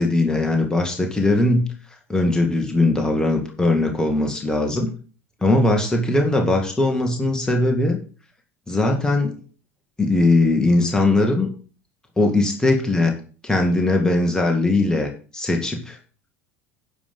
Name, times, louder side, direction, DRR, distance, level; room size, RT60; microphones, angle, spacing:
voice 1, 0.0-1.6 2.1-4.9 5.4-8.0 8.7-9.4 10.0-11.5 12.2-13.1 13.4-16.0, left 2 dB, 10° left, 1 dB, 2.0 m, -20 dB
11.0 x 5.6 x 5.4 m, 0.38 s
figure-of-eight pair, 70°, 8 cm